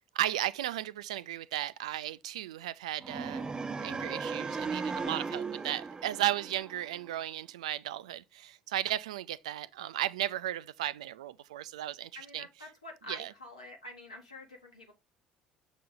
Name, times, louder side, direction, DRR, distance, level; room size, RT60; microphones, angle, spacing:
voice 1, 0.1-3.5 3.8-12.5 13.1-13.3, right 13 dB, 75° right, 0.4 m, -35 dB
sound 1, 3.0-7.1, right 4 dB, 20° right, 0.6 m, -37 dB
voice 2, 12.1-14.9, left 2 dB, 85° left, 1.3 m, -47 dB
6.3 x 4.1 x 3.8 m
figure-of-eight pair, 60°, 4 cm